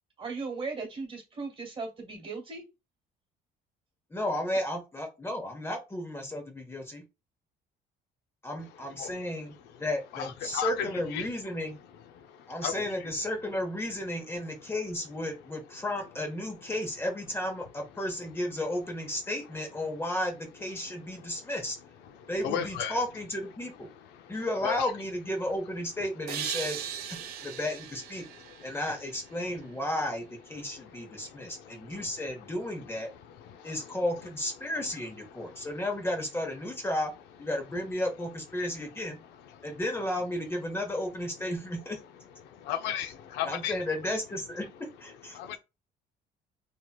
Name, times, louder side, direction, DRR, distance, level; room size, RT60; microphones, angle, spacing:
voice 1, 0.2-2.6, right 4 dB, 30° right, 1.5 m, -37 dB
voice 2, 4.1-7.0 8.4-11.8 12.5-21.8 22.3-23.9 24.3-26.8 27.4-28.2 28.6-33.1 33.6-37.1 37.4-39.2 39.6-42.0 43.4-45.4, left 1 dB, 15° left, 1.0 m, -33 dB
voice 3, 10.1-11.3 12.1-12.9 21.2-21.4 22.2-23.0 24.2-24.3 24.6-24.9 27.4-27.5 28.6-28.8 30.7-32.0 33.3-33.9 35.4-35.7 39.5-39.7 42.4-43.8 45.3-45.6, left 9 dB, 85° left, 0.5 m, -36 dB
sound 1, 26.3-29.8, right 10 dB, 70° right, 0.5 m, -39 dB
3.0 x 2.7 x 2.2 m
cardioid pair, 110°, 17 cm